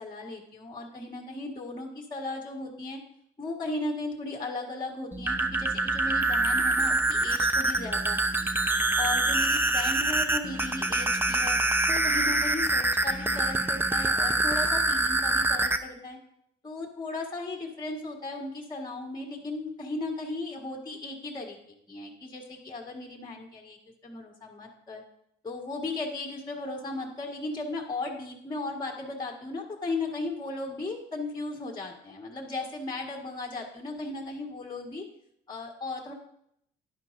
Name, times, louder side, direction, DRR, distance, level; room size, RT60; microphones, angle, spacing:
voice 1, 0.0-3.0 3.4-8.3 9.0-11.6 11.9-16.2 16.6-21.6 21.9-25.0 25.4-35.1 35.5-36.1, left 2 dB, 20° left, 1 dB, 1.7 m, -36 dB
sound 1, 5.1-15.8, right 2 dB, 10° right, 0.7 m, -25 dB
12.5 x 11.0 x 2.7 m, 0.74 s
cardioid pair, 90°, 20 cm